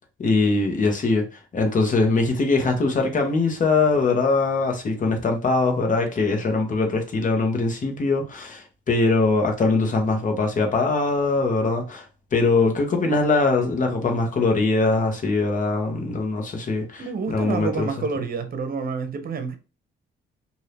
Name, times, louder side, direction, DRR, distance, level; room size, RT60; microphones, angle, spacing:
voice 1, 0.2-12.0 12.3-17.9, left 3 dB, 40° left, 1.1 m, -22 dB
voice 2, 17.0-19.6, right 5 dB, 50° right, 0.9 m, -28 dB
2.7 x 2.6 x 3.4 m
cardioid pair, 90°, 20 cm